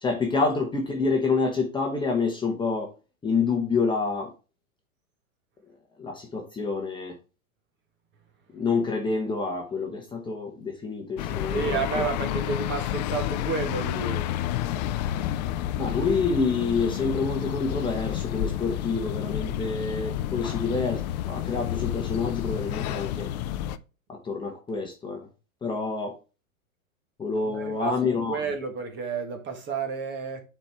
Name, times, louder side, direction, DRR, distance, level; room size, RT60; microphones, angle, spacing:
voice 1, 0.0-2.9 3.2-4.3 6.0-7.1 8.5-12.0 15.8-23.3 24.1-25.2 25.6-26.1 27.2-28.4, left 4 dB, 10° left, 1.2 m, -27 dB
sound 1, 11.2-23.8, left 12 dB, 35° left, 0.4 m, -30 dB
voice 2, 11.5-14.3 27.5-30.4, right 5 dB, 25° right, 1.7 m, -31 dB
9.2 x 4.5 x 3.5 m
hypercardioid pair, 125°, 41 cm